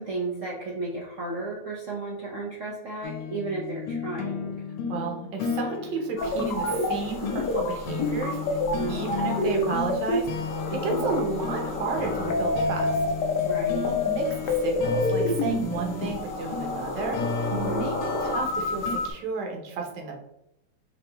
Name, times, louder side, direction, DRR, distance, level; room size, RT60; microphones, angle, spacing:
voice 1, 0.0-4.6 8.7-9.1 10.7-11.1 13.4-13.9 17.5-17.9, right 2 dB, 85° right, -3 dB, 0.6 m, -33 dB
sound 1, 3.0-19.0, left 5 dB, 85° left, 1.6 m, -34 dB
voice 2, 4.9-8.6 8.9-10.3 10.8-13.0 13.8-17.9 18.2-20.2, right 4 dB, 60° right, 1 dB, 1.4 m, -32 dB
sound 2, 6.2-19.1, left 2 dB, 65° left, 1.1 m, -28 dB
5.0 x 2.8 x 3.4 m, 0.82 s
omnidirectional pair, 2.4 m